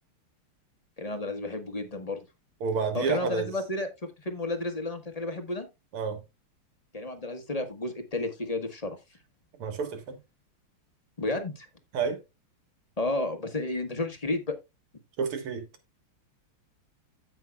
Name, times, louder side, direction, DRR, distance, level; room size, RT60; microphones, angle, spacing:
voice 1, 1.0-2.2 2.9-5.7 6.9-9.0 11.2-11.7 13.0-14.5, left 2 dB, 20° left, 1.1 m, -32 dB
voice 2, 2.6-3.5 5.9-6.2 9.6-10.2 11.9-12.2 15.2-15.7, right 5 dB, 85° right, 2.4 m, -29 dB
15.5 x 5.7 x 2.3 m
omnidirectional pair, 2.4 m